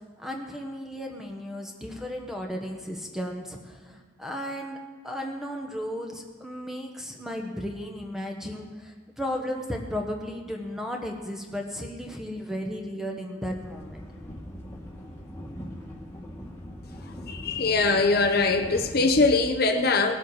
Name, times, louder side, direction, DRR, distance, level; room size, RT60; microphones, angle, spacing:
voice 1, 0.2-4.8 5.0-14.0, equal, ahead, 2 dB, 1.2 m, -34 dB
sound 1, 13.5-19.3, equal, 15° left, 1.7 m, -41 dB
voice 2, 17.3-20.1, left 3 dB, 50° left, 4 dB, 0.8 m, -22 dB
19.0 x 7.9 x 4.7 m, 1.5 s
head